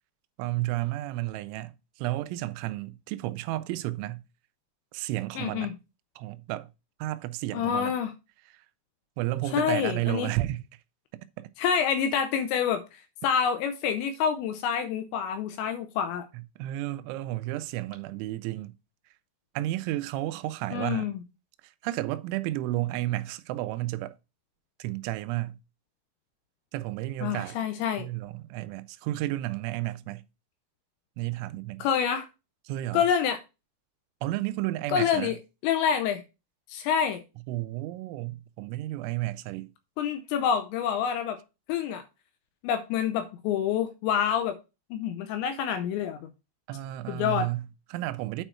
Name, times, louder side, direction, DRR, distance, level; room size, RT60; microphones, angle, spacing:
voice 1, 0.4-4.2 4.9-5.8 6.2-6.7 7.0-8.0 8.5-8.6 9.2-10.6 11.4-11.5 16.3-18.7 19.6-21.1 21.6-24.1 24.8-25.6 26.7-27.7 28.0-30.2 31.2-31.9 32.7-33.1 34.2-35.3 37.5-39.7 46.7-48.4, right 16 dB, 90° right, 3.0 m, -32 dB
voice 2, 5.4-5.7 7.5-8.1 9.5-10.3 11.6-16.2 20.7-21.2 27.2-28.1 31.8-32.3 32.9-33.4 34.9-35.4 35.6-36.2 36.7-37.2 40.0-41.4 41.7-42.0 42.6-44.6 44.9-46.3 47.1-47.5, left 8 dB, 80° left, 2.9 m, -27 dB
9.0 x 4.4 x 4.4 m
omnidirectional pair, 5.4 m